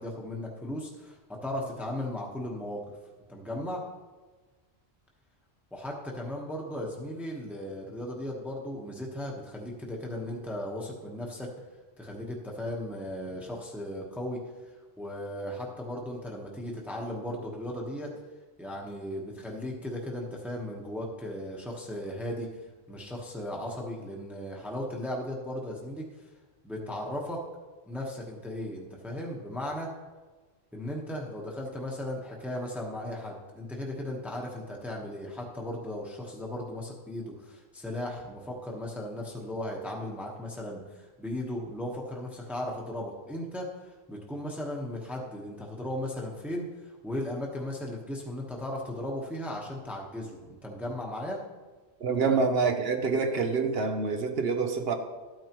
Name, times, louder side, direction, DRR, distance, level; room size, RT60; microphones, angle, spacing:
voice 1, 0.0-2.9 3.3-3.8 5.7-11.6 12.0-14.4 15.0-18.2 18.6-22.5 22.9-26.1 26.6-27.4 27.9-29.9 30.7-51.4 52.3-52.4, left 1 dB, ahead, -1 dB, 1.1 m, -36 dB
voice 2, 52.0-54.9, right 4 dB, 65° right, 6 dB, 1.0 m, -26 dB
13.0 x 9.1 x 3.0 m, 1.3 s
omnidirectional pair, 1.1 m